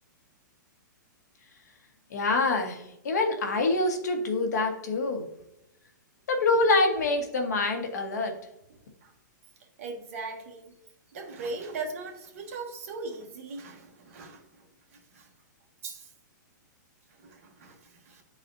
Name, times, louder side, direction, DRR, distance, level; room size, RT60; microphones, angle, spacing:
voice 1, 2.1-5.3 6.3-8.3, left 3 dB, 60° left, 4 dB, 1.3 m, -26 dB
voice 2, 9.8-10.7 11.1-15.3 15.8-16.1 17.2-18.2, right 3 dB, 45° right, 2 dB, 1.2 m, -39 dB
10.5 x 4.1 x 2.6 m, 0.87 s
hypercardioid pair, 175°, 10 cm